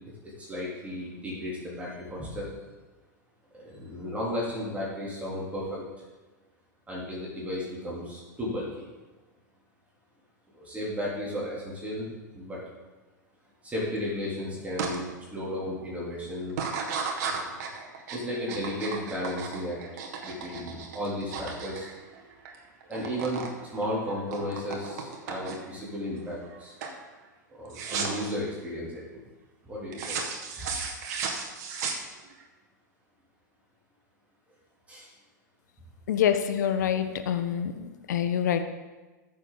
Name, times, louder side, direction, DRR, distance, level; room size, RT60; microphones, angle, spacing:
voice 1, 0.4-2.5 3.5-5.8 6.9-8.9 10.5-12.1 12.3-12.6 13.6-15.0 15.3-16.6 17.2-17.6 18.1-19.8 20.2-21.9 22.9-23.4 23.7-26.8 27.5-29.2 29.6-30.7 34.9-35.1, left 1 dB, 15° right, -6 dB, 3.5 m, -34 dB
sound 1, 14.8-15.0 15.4-15.8 16.5-22.6 22.8-23.5 23.8-25.8 26.3-26.6 26.8-27.0 27.7-28.3 29.9-32.4, right 5 dB, 55° right, 1.8 m, -35 dB
voice 2, 36.1-38.6, left 9 dB, 65° left, 9 dB, 1.0 m, -26 dB
14.5 x 7.1 x 4.0 m, 1.2 s
figure-of-eight pair, 95°, 10 cm